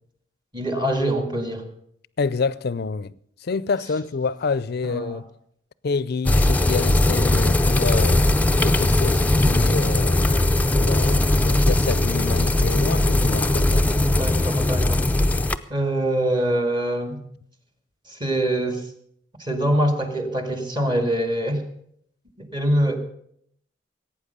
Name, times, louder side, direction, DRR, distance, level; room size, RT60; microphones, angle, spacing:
voice 1, 0.5-1.7 4.8-5.2 14.0-15.1 15.7-17.3 18.1-18.9 19.4-21.6 22.4-23.0, right 1 dB, 25° right, 1.8 m, -24 dB
voice 2, 2.2-3.1 3.4-5.2 5.8-8.2 8.6-10.4 10.7-13.9, left 4 dB, 55° left, 0.5 m, -28 dB
sound 1, 6.2-15.6, left 1 dB, 10° left, 0.5 m, -19 dB
17.5 x 8.9 x 6.6 m
head